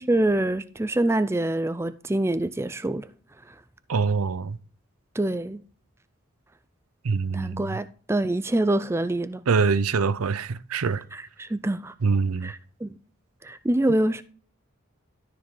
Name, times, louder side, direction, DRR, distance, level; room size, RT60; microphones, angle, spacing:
voice 1, 0.0-3.1 3.5-3.6 5.1-5.6 7.3-9.4 11.1-11.9 12.4-13.0 13.4-14.2, right 1 dB, 10° right, 0.3 m, -25 dB
voice 2, 3.9-4.6 7.0-7.7 9.5-11.0 12.0-12.5, right 5 dB, 85° right, 0.6 m, -24 dB
12.5 x 6.9 x 3.8 m
head